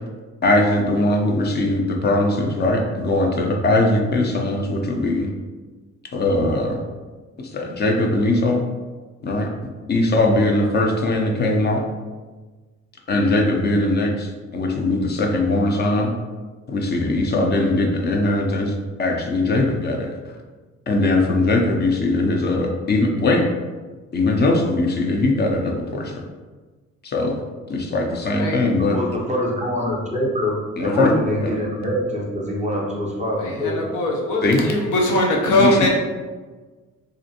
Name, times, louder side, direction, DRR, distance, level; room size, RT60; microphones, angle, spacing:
voice 1, 0.4-5.3 6.1-6.8 7.4-8.6 9.2-9.5 9.9-11.8 13.1-16.1 16.7-20.1 20.9-23.4 24.1-26.1 27.0-27.4 27.7-29.0 30.8-31.1 31.4-31.5 34.4-34.6 35.6-35.9, left 2 dB, 35° left, 1 dB, 0.4 m, -20 dB
voice 2, 28.8-33.9, equal, 25° right, -2 dB, 0.6 m, -25 dB
voice 3, 33.4-35.9, left 1 dB, 85° left, -1 dB, 0.6 m, -20 dB
2.5 x 2.1 x 2.7 m, 1.3 s
cardioid pair, 90°, 30 cm